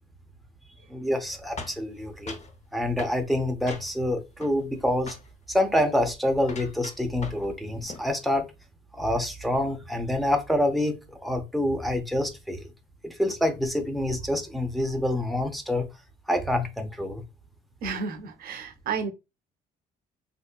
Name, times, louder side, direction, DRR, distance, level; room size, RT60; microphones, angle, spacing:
voice 1, 0.9-2.4 2.7-5.2 5.5-8.5 8.9-12.7 13.0-15.9 16.3-17.2, left 1 dB, ahead, 0.7 m, -27 dB
sound 1, 1.6-2.5 3.0-3.2 3.7-4.1 4.4-4.8 5.1-5.3 5.7-6.0 6.4-7.5 7.8-8.1, left 3 dB, 40° left, 0.9 m, -41 dB
voice 2, 17.8-19.1, right 5 dB, 60° right, 0.8 m, -31 dB
3.6 x 2.7 x 2.4 m
cardioid pair, 110°, 17 cm